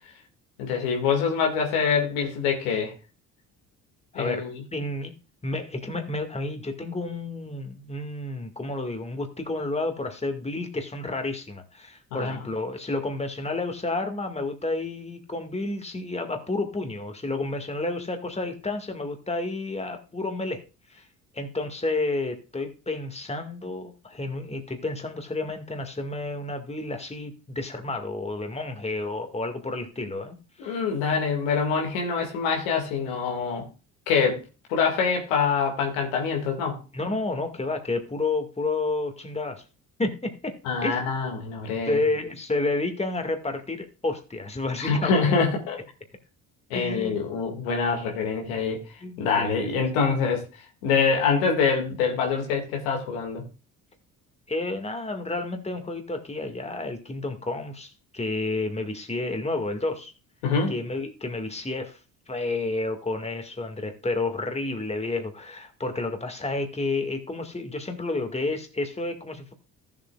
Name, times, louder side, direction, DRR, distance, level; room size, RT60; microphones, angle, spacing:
voice 1, 0.6-2.9 4.1-4.6 12.1-12.4 30.6-33.7 34.1-34.4 34.7-36.8 40.6-42.0 44.8-45.8 46.7-48.8 49.2-50.4 50.8-53.4 60.4-60.8, left 5 dB, 85° left, 1 dB, 2.1 m, -25 dB
voice 2, 4.1-5.1 5.4-20.6 20.9-21.0 21.3-30.4 30.6-30.8 36.9-39.6 40.0-40.5 40.8-41.0 41.9-45.1 46.7-47.3 49.0-49.8 54.5-60.1 60.7-62.0 62.3-69.5, left 2 dB, 15° left, 5 dB, 1.9 m, -30 dB
15.0 x 7.4 x 2.4 m, 0.32 s
hypercardioid pair, 55°, 40 cm